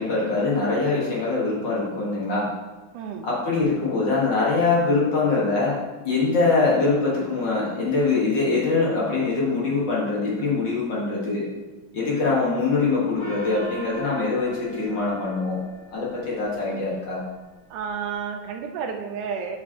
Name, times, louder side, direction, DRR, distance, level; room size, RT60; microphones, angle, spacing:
voice 1, 0.0-2.5 3.2-5.8 6.0-11.5 11.9-15.6 15.9-17.2, left 3 dB, 55° left, -5 dB, 1.3 m, -23 dB
voice 2, 2.9-3.3 17.7-19.6, right 6 dB, 85° right, 2 dB, 1.8 m, -31 dB
Gong, 13.2-16.1, right 2 dB, 70° left, 0.8 m, -39 dB
8.9 x 5.2 x 2.9 m, 1.2 s
omnidirectional pair, 4.2 m